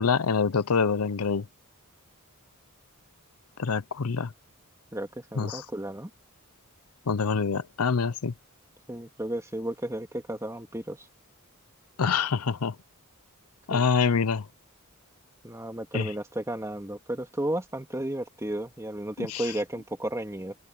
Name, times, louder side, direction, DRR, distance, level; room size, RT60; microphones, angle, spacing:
voice 1, 0.0-1.4 3.6-4.3 5.4-5.6 7.1-8.3 12.0-12.7 13.7-14.4 15.9-16.1 19.2-19.4, left 5 dB, 85° left, 0.7 m, -25 dB
voice 2, 4.9-6.1 8.9-11.1 13.7-13.9 15.4-20.6, right 1 dB, 15° right, 2.5 m, -33 dB
open air
head